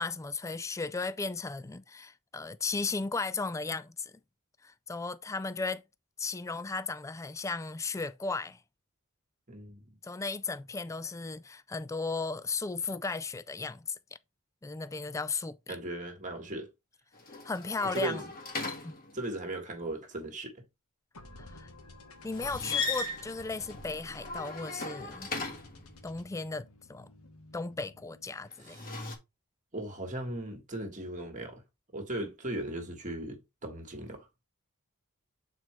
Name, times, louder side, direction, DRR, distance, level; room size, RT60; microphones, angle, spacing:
voice 1, 0.0-4.1 4.6-5.8 6.2-8.6 10.0-14.0 14.6-15.8 17.4-18.2 18.8-18.9 21.4-21.7 22.2-25.3 26.0-27.1 27.5-28.8, left 3 dB, 15° left, 0.3 m, -35 dB
voice 2, 9.5-10.0 15.7-16.7 17.9-18.3 19.1-20.6 28.6-28.8 29.7-31.6 31.9-34.4, right 1 dB, 35° right, 1.6 m, -37 dB
sound 1, 17.1-19.5 22.3-25.9 28.5-29.2, left 4 dB, 40° left, 1.5 m, -37 dB
sound 2, 21.1-28.5, left 2 dB, 85° left, 1.4 m, -51 dB
7.9 x 4.5 x 3.2 m
head